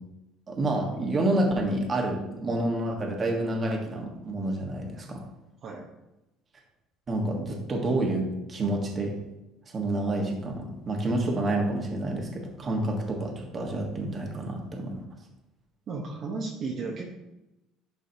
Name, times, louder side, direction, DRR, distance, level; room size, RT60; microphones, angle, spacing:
voice 1, 0.5-5.2 7.1-9.2 9.7-15.0, right 1 dB, 25° right, 1 dB, 1.5 m, -28 dB
voice 2, 15.9-17.1, right 4 dB, 40° right, -2 dB, 1.0 m, -34 dB
11.0 x 4.9 x 2.9 m, 0.95 s
cardioid pair, 145°, 0 cm